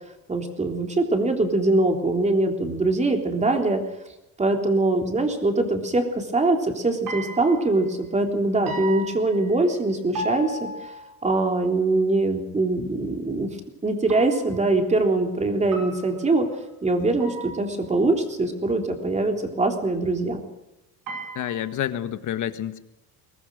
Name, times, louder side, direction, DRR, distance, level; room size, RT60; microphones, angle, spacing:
voice 1, 0.3-3.8 4.4-10.9 11.2-13.5 13.8-16.5 16.8-20.4, right 2 dB, 20° right, 3 dB, 3.5 m, -23 dB
sound 1, 7.1-7.9 8.7-9.9 10.2-11.2 14.1-14.7 15.7-16.4 17.2-17.9 21.1-21.9, right 1 dB, 60° right, 5.6 m, -35 dB
voice 2, 21.3-22.8, left 11 dB, 55° left, 10 dB, 1.6 m, -28 dB
23.0 x 19.0 x 6.4 m, 0.94 s
cardioid pair, 135°, 36 cm